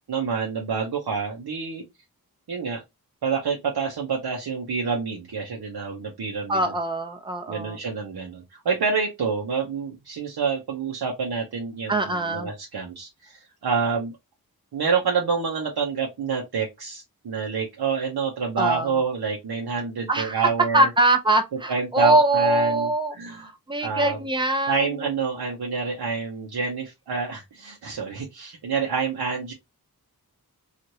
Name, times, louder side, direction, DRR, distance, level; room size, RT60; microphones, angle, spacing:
voice 1, 0.1-1.8 2.5-2.8 3.2-6.6 7.5-14.1 14.7-20.9 21.7-22.9 23.2-23.5 23.8-24.2 24.7-29.5, right 5 dB, 90° right, 0.7 m, -27 dB
voice 2, 6.5-7.8 11.9-12.5 18.6-19.0 20.1-25.1, right 2 dB, 15° right, 0.5 m, -23 dB
3.0 x 2.4 x 2.7 m
wide cardioid pair, 75°, 38 cm